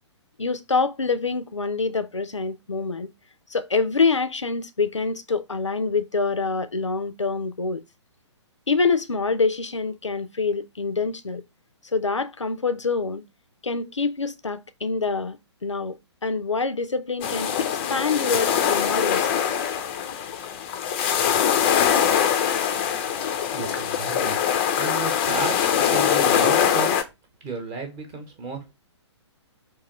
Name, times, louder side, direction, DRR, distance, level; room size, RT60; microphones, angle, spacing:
voice 1, 0.4-3.1 3.5-7.8 8.7-11.4 11.9-13.2 13.6-17.5 17.9-19.3, left 4 dB, 85° left, 0.5 m, -25 dB
sound 1, 17.2-27.0, left 8 dB, 25° left, 0.4 m, -23 dB
voice 2, 23.3-24.4 24.8-27.0 27.4-28.7, right 4 dB, 20° right, 0.9 m, -33 dB
3.8 x 2.6 x 2.9 m
figure-of-eight pair, 125°, 15 cm